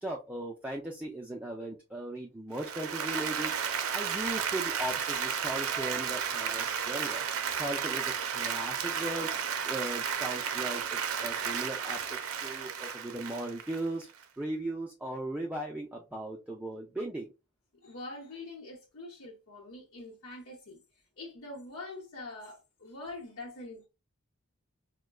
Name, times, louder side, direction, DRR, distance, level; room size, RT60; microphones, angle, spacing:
voice 1, 0.0-14.1 14.4-17.3, right 1 dB, 5° right, 0.4 m, -38 dB
Applause, 2.5-14.2, right 7 dB, 75° right, 0.5 m, -33 dB
voice 2, 17.8-20.8 21.2-23.9, left 2 dB, 75° left, 0.9 m, -44 dB
4.8 x 2.2 x 2.3 m
head